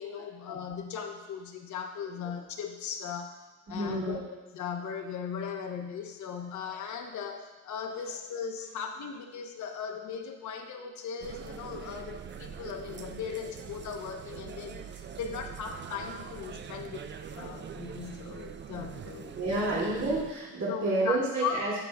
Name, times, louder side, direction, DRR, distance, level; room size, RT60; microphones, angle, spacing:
voice 1, 0.0-3.4 3.7-4.2 4.5-19.4 20.7-21.6, left 7 dB, 70° left, 4 dB, 0.9 m, -38 dB
voice 2, 3.7-4.3 6.6-6.7 19.3-21.8, right 2 dB, 65° right, -6 dB, 2.4 m, -30 dB
sound 1, 11.2-20.3, right 7 dB, 40° right, 0.5 m, -43 dB
14.0 x 5.0 x 2.3 m, 1.1 s
cardioid pair, 90°, 30 cm